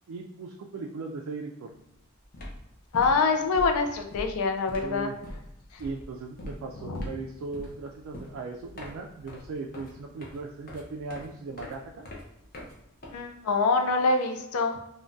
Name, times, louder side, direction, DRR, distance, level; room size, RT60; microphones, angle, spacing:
voice 1, 0.1-1.7 4.8-5.2 5.8-12.1, right 3 dB, 65° right, 1 dB, 0.3 m, -38 dB
sound 1, 1.7-1.9 2.2-13.6, left 1 dB, 45° left, 0.7 m, -43 dB
voice 2, 2.9-5.1 6.9-7.0 13.1-14.8, left 4 dB, 80° left, 6 dB, 0.4 m, -25 dB
3.4 x 2.2 x 2.5 m, 0.85 s
head